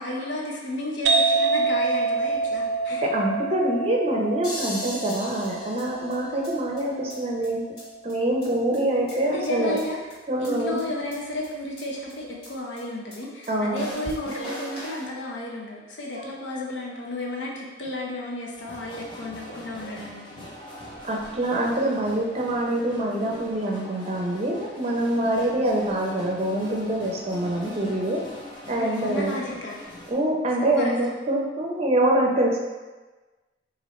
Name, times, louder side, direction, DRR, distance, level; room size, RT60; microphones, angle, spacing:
voice 1, 0.0-3.0 9.3-10.0 10.4-20.4 25.4-25.7 28.7-29.8 30.6-31.2, left 1 dB, 85° left, -2 dB, 0.7 m, -33 dB
sound 1, 1.1-8.5, right 4 dB, 80° right, 0.4 m, -27 dB
voice 2, 3.1-7.6 8.0-9.8 10.3-10.8 13.5-13.8 16.1-16.3 19.8-19.9 21.0-28.2 28.7-29.4 30.1-32.6, right 1 dB, 35° right, -1 dB, 0.6 m, -25 dB
sound 2, 4.4-6.5 6.8-6.9 7.1-7.2 7.4-7.5 7.8-7.9 8.1-8.2 8.4-8.5 8.7-9.5 9.8-9.9 10.1-10.2 10.4-10.5 10.8-10.9 11.1-11.2 11.4-11.5 11.8-11.9 12.1-12.2 12.4-12.5 12.8-12.9 13.1-13.2 13.4-13.5 13.8-15.1, left 1 dB, 55° left, 1.4 m, -37 dB
sound 3, 18.5-30.1, left 1 dB, 25° left, 0.7 m, -43 dB
4.3 x 2.5 x 3.1 m, 1.2 s
head